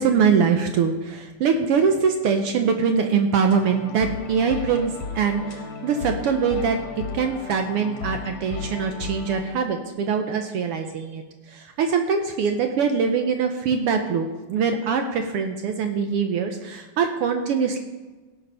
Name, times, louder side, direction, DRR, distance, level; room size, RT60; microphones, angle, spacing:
voice 1, 0.0-6.8 7.1-11.2 11.5-17.8, right 6 dB, 80° right, 5 dB, 1.3 m, -23 dB
sound 1, 3.5-9.4, left 4 dB, 60° left, 2.4 m, -35 dB
17.5 x 6.9 x 5.6 m, 1.2 s
omnidirectional pair, 3.6 m